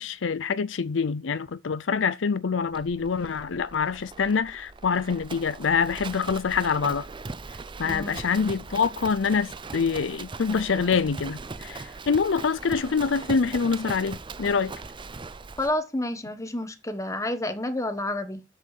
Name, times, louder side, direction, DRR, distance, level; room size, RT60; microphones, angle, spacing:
voice 1, 0.0-7.1 7.8-14.7, left 5 dB, 75° left, 0.5 m, -25 dB
Livestock farm animals working animals, 2.7-15.7, right 3 dB, 25° right, 0.5 m, -40 dB
voice 2, 7.8-8.1 15.6-18.4, left 1 dB, 15° left, 1.2 m, -29 dB
7.7 x 6.6 x 7.3 m
head